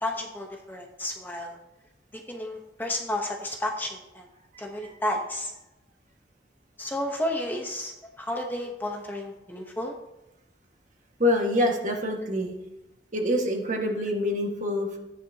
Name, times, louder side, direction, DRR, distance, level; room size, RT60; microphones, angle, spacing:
voice 1, 0.0-1.6 2.1-4.3 4.6-5.5 6.8-9.9, left 1 dB, 10° left, 1 dB, 0.9 m, -32 dB
voice 2, 11.2-12.5 13.1-15.0, left 1 dB, 45° right, 1 dB, 1.6 m, -26 dB
14.5 x 10.0 x 2.8 m, 0.92 s
head